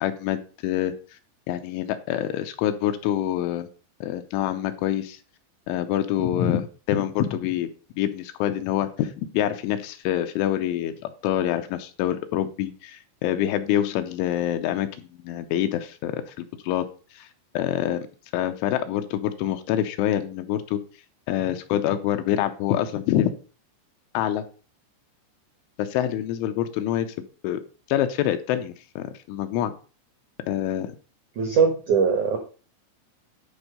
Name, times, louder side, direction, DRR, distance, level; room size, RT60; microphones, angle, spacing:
voice 1, 0.0-0.9 1.5-3.7 4.0-5.2 5.7-7.7 8.0-16.9 17.1-17.3 17.5-18.1 18.3-20.8 21.3-23.3 24.1-24.4 25.8-27.2 27.4-27.6 27.9-29.7 30.5-30.9, left 11 dB, 85° left, 8 dB, 3.0 m, -26 dB
voice 2, 31.4-32.4, right 6 dB, 75° right, 4 dB, 1.8 m, -21 dB
11.0 x 4.4 x 6.7 m, 0.37 s
omnidirectional pair, 5.7 m